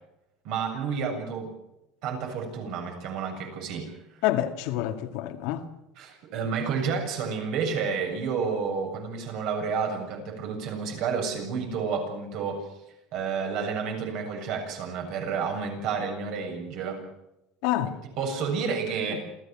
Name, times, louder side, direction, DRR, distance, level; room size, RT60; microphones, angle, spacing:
voice 1, 0.4-1.5 2.0-3.9 6.0-12.7 13.1-17.0 17.8-19.2, right 5 dB, 60° right, 7.3 m, -30 dB
voice 2, 4.2-5.7 17.6-18.0, left 13 dB, 70° left, 2.0 m, -27 dB
27.5 x 15.5 x 7.5 m
cardioid pair, 150°, 0 cm